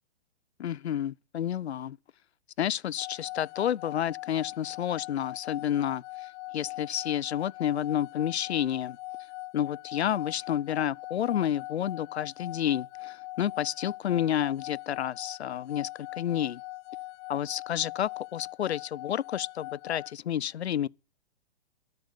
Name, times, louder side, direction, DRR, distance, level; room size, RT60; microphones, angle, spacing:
voice 1, 0.6-2.0 2.6-6.3 6.5-9.0 9.5-16.6 17.3-20.9, left 10 dB, 75° left, 0.6 m, -30 dB
sound 1, 3.0-20.1, left 19 dB, 25° left, 0.5 m, -41 dB
12.5 x 7.8 x 7.1 m
hypercardioid pair, 130°, 32 cm